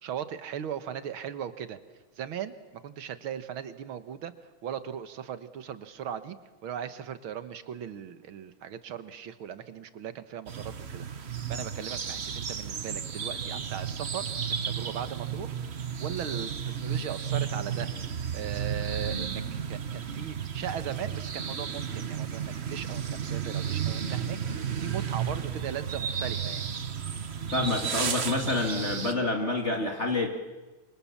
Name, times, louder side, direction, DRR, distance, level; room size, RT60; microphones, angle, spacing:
voice 1, 0.0-1.8 2.2-2.5 2.8-4.3 4.6-6.4 6.6-14.3 14.6-17.9 18.3-26.6, right 9 dB, 75° right, 11 dB, 2.0 m, -38 dB
sound 1, 10.5-29.1, right 7 dB, 40° right, 1.1 m, -33 dB
voice 2, 27.5-30.3, left 2 dB, 35° left, 2 dB, 2.4 m, -28 dB
27.5 x 25.0 x 7.2 m, 1.2 s
omnidirectional pair, 2.3 m